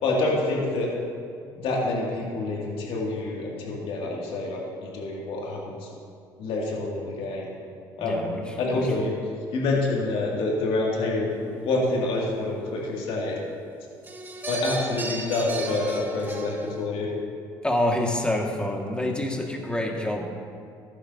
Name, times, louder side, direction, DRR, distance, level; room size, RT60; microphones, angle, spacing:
voice 1, 0.0-0.9 1.5-5.9 6.4-7.5 8.0-8.3 8.6-9.1 9.5-13.4 14.5-17.1, left 2 dB, 70° left, -3 dB, 2.5 m, -27 dB
voice 2, 8.0-8.4 8.7-8.9 17.6-20.2, left 1 dB, 10° left, 0 dB, 2.0 m, -27 dB
sound 1, 14.0-16.9, right 2 dB, 20° right, 1.6 m, -34 dB
14.5 x 11.0 x 2.8 m, 2.3 s
supercardioid pair, 75°, 10 cm